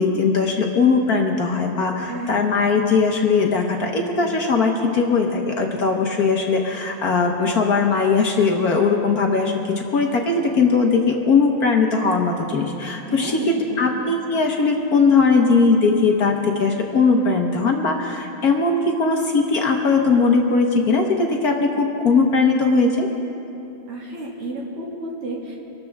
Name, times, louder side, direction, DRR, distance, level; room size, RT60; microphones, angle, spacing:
voice 1, 0.0-23.1, left 4 dB, 55° left, 2 dB, 1.3 m, -19 dB
voice 2, 2.6-3.0 13.1-13.9 23.9-25.6, right 1 dB, 85° right, -3 dB, 3.2 m, -32 dB
24.5 x 12.5 x 3.5 m, 3.0 s
omnidirectional pair, 2.4 m